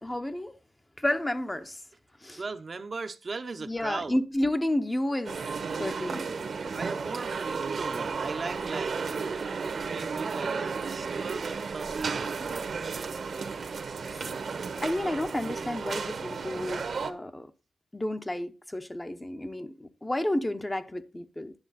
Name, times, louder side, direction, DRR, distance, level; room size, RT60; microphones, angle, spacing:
voice 1, 0.0-0.5 1.0-1.8 2.2-2.4 3.6-5.4 5.8-6.3 13.6-13.7 14.8-17.5 17.9-21.5, left 1 dB, 15° left, 0.8 m, -31 dB
voice 2, 2.3-4.2 6.7-8.9 9.5-13.1, right 4 dB, 45° right, 0.8 m, -38 dB
sound 1, 5.2-17.1, right 5 dB, 65° right, 1.2 m, -33 dB
10.5 x 7.1 x 4.1 m
cardioid pair, 90°, 0 cm